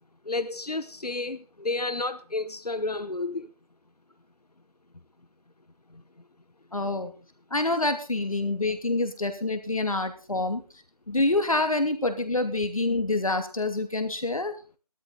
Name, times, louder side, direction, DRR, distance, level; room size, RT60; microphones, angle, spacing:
voice 1, 0.2-3.5, left 2 dB, 85° left, 1.2 m, -31 dB
voice 2, 6.7-7.1 7.5-10.6 11.1-14.5, left 2 dB, 60° left, 2.7 m, -26 dB
15.0 x 13.0 x 3.9 m
figure-of-eight pair, 170°, 20 cm